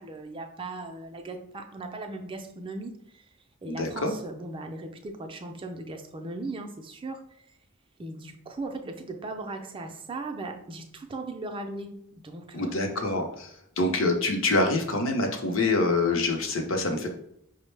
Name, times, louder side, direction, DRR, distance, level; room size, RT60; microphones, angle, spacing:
voice 1, 0.0-2.9 3.6-7.2 8.0-12.9, right 2 dB, 25° right, 4 dB, 0.4 m, -38 dB
voice 2, 3.7-4.1 12.5-17.1, left 2 dB, 70° left, 3 dB, 0.6 m, -26 dB
5.1 x 2.1 x 3.2 m, 0.72 s
head